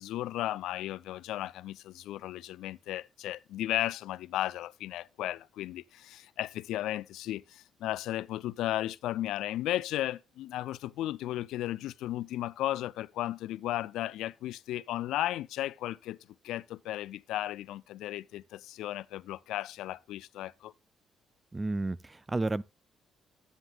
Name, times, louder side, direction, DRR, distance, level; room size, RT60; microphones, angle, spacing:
voice 1, 0.0-16.2 16.4-20.7, left 14 dB, 90° left, 0.4 m, -35 dB
voice 2, 21.5-22.6, right 2 dB, 20° right, 0.5 m, -31 dB
12.0 x 9.5 x 2.4 m
cardioid pair, 90°, 0 cm